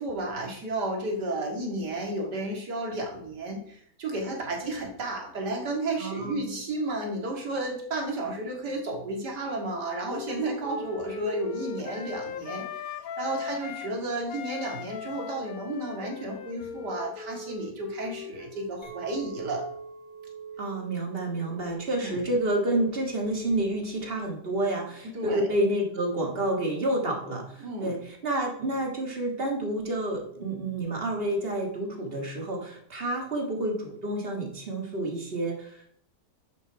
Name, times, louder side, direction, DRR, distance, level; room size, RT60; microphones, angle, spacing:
voice 1, 0.0-12.8 13.2-19.7 22.0-22.2 25.0-25.5 27.6-27.9, right 2 dB, 85° right, 1 dB, 2.6 m, -32 dB
voice 2, 6.0-6.5 20.6-36.0, right 1 dB, 35° right, 1 dB, 2.0 m, -29 dB
Wind instrument woodwind instrument, 9.4-13.9 14.3-18.8, left 6 dB, 65° left, 1.1 m, -39 dB
Chink clink, 18.8-24.0, right 6 dB, 20° left, 1.1 m, -44 dB
11.0 x 5.7 x 4.7 m, 0.66 s
omnidirectional pair, 1.7 m